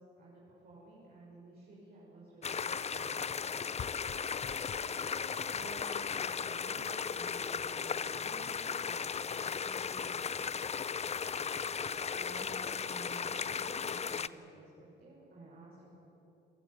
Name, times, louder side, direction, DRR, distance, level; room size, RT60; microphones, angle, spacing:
voice 1, 0.2-3.5 4.5-8.5 8.8-10.6 11.8-16.0, right 2 dB, 50° right, -6 dB, 6.6 m, -53 dB
sound 1, 2.4-14.3, left 6 dB, 35° left, 0.6 m, -36 dB
27.0 x 16.0 x 8.4 m, 3.0 s
cardioid pair, 90°, 20 cm